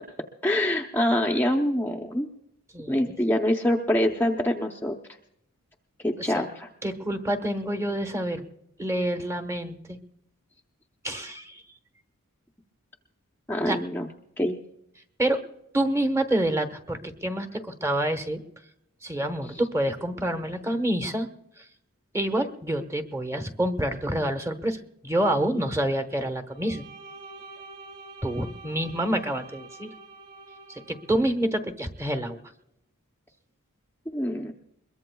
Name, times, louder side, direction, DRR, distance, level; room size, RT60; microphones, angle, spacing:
voice 1, 0.4-2.3 2.9-4.9 6.0-6.7 13.5-14.1 14.4-14.6 34.1-34.5, left 1 dB, 10° left, 1 dB, 0.7 m, -25 dB
voice 2, 2.7-3.2 6.2-6.5 6.8-8.4 8.8-10.0 11.0-11.6 13.7-13.8 15.2-15.4 15.7-18.4 19.0-21.3 21.6-21.7 22.1-26.8 28.2-29.9 30.7-32.4, right 1 dB, 15° right, 8 dB, 1.1 m, -27 dB
Bowed string instrument, 26.5-31.2, right 3 dB, 45° right, 6.0 m, -46 dB
22.0 x 22.0 x 2.3 m, 0.79 s
head